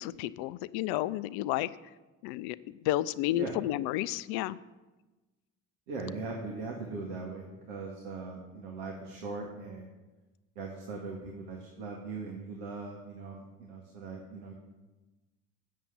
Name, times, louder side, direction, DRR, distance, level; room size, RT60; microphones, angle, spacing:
voice 1, 0.0-1.7 2.2-4.6, left 15 dB, 65° left, 16 dB, 0.6 m, -31 dB
voice 2, 5.9-9.9 10.6-14.5, right 3 dB, 70° right, 0 dB, 1.9 m, -40 dB
8.4 x 7.2 x 8.4 m, 1.1 s
hypercardioid pair, 60°, 41 cm